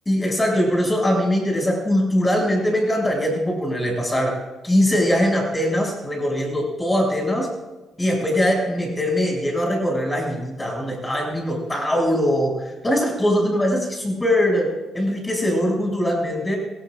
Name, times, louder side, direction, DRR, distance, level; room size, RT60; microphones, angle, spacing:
voice 1, 0.1-4.4 4.6-7.5 8.0-16.6, equal, 15° left, 0 dB, 6.9 m, -21 dB
25.0 x 17.5 x 2.5 m, 1.1 s
cardioid pair, 90°, 0 cm